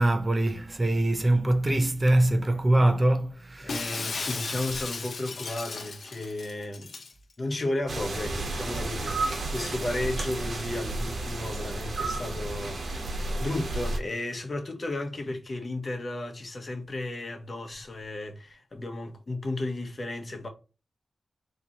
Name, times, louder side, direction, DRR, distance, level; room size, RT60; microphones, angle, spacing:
voice 1, 0.0-3.8, right 1 dB, 30° right, 0.6 m, -23 dB
voice 2, 3.6-6.9 7.4-20.5, left 2 dB, 45° left, 0.9 m, -34 dB
Shatter, 3.7-7.1, left 4 dB, 65° left, 0.6 m, -35 dB
sound 1, 7.9-14.0, right 2 dB, 65° right, 1.1 m, -32 dB
3.8 x 2.9 x 2.9 m
cardioid pair, 75°, 0 cm